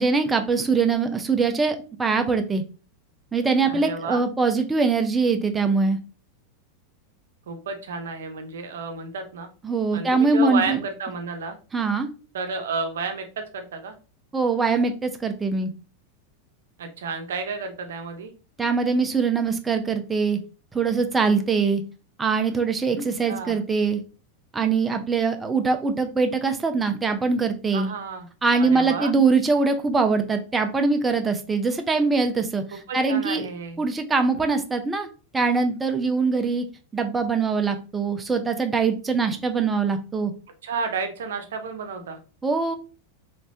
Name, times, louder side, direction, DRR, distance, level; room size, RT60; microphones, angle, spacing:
voice 1, 0.0-2.6 3.3-6.0 9.6-10.8 11.7-12.1 14.3-15.7 18.6-20.4 20.7-21.8 22.2-24.0 24.5-27.9 28.4-33.5 33.8-35.1 35.3-36.6 36.9-40.3 42.4-42.8, right 4 dB, 15° right, 6 dB, 0.6 m, -22 dB
voice 2, 3.7-4.2 7.5-9.5 9.9-11.6 12.3-13.9 16.8-18.3 23.3-23.6 27.7-28.3 28.6-29.1 32.7-33.8 40.6-42.2, right 5 dB, 80° right, 6 dB, 0.6 m, -31 dB
3.3 x 3.0 x 2.7 m, 0.35 s
hypercardioid pair, 100°, 0 cm